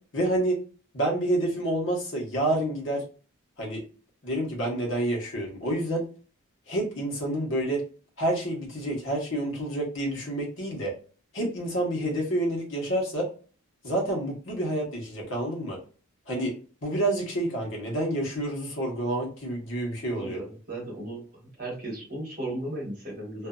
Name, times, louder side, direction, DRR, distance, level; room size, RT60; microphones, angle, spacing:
voice 1, 0.1-0.5 0.9-3.0 3.6-3.8 4.2-6.0 6.7-7.8 8.2-10.9 11.3-13.2 13.8-15.8 16.3-16.5 16.8-20.4, right 1 dB, 60° left, -1 dB, 1.1 m, -28 dB
voice 2, 20.2-23.5, right 1 dB, 40° right, -4 dB, 1.1 m, -36 dB
2.6 x 2.5 x 2.2 m, 0.39 s
head